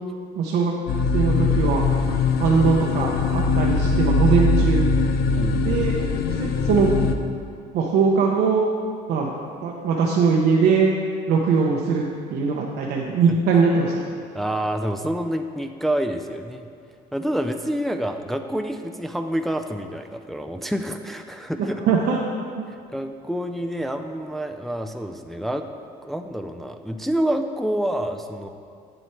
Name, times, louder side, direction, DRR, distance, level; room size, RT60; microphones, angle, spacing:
voice 1, 0.4-0.7 1.1-1.8 2.4-4.9 5.6-6.0 6.3-7.0 7.7-8.6 9.1-9.3 9.6-10.9 11.3-12.0 12.3-13.9 21.6-22.2 22.5-22.7, right 5 dB, 75° right, -1 dB, 0.8 m, -21 dB
sound 1, 0.9-7.2, left 3 dB, 70° left, 0.6 m, -21 dB
voice 2, 5.3-5.8 14.3-16.6 17.1-21.8 22.7-25.6 26.0-28.5, right 1 dB, ahead, 6 dB, 0.4 m, -28 dB
8.0 x 7.9 x 4.4 m, 2.2 s
cardioid pair, 110°, 17 cm